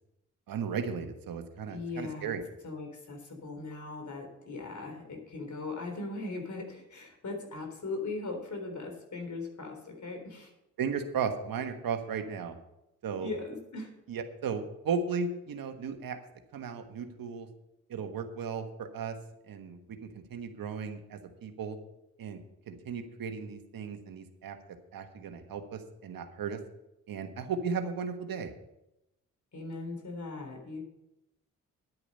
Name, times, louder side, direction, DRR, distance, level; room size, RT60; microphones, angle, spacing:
voice 1, 0.5-2.4 10.8-12.6 13.0-13.3 14.1-16.2 16.5-17.5 17.9-19.2 19.5-21.8 22.2-22.4 22.7-24.6 24.9-26.6 27.1-28.5, right 6 dB, 70° right, 7 dB, 1.4 m, -35 dB
voice 2, 1.7-2.4 2.6-10.5 13.2-13.9 29.5-30.8, left 3 dB, 55° left, 4 dB, 3.8 m, -39 dB
10.5 x 9.7 x 5.5 m, 0.88 s
supercardioid pair, 50°, 35 cm